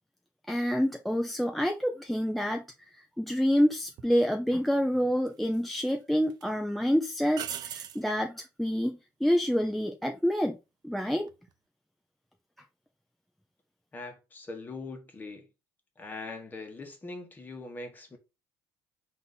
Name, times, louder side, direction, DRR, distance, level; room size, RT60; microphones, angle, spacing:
voice 1, 0.5-10.6 10.8-11.3, equal, ahead, 0.4 m, -28 dB
sound 1, 4.0-4.1 5.3-5.9 6.3-6.4 7.3-8.0 11.1-11.5, right 10 dB, 55° right, 0.5 m, -39 dB
voice 2, 13.9-15.5 16.0-18.2, left 3 dB, 20° left, 1.2 m, -41 dB
3.9 x 2.6 x 3.8 m
cardioid pair, 115°, 8 cm